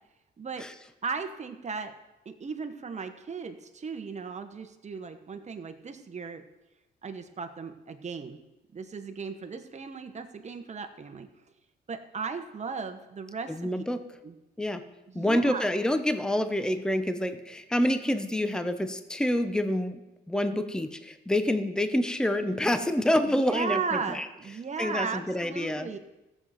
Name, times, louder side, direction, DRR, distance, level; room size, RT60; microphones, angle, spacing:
voice 1, 1.0-1.9 2.2-6.4 7.0-8.4 8.7-11.3 11.9-13.5 14.2-14.3 15.1-15.7 23.3-26.0, right 5 dB, 35° right, 7 dB, 1.2 m, -36 dB
voice 2, 13.5-14.0 14.6-14.8 15.1-24.3 24.8-25.9, left 1 dB, 5° left, 10 dB, 0.8 m, -27 dB
15.0 x 7.5 x 5.2 m, 1.0 s
cardioid pair, 90°, 20 cm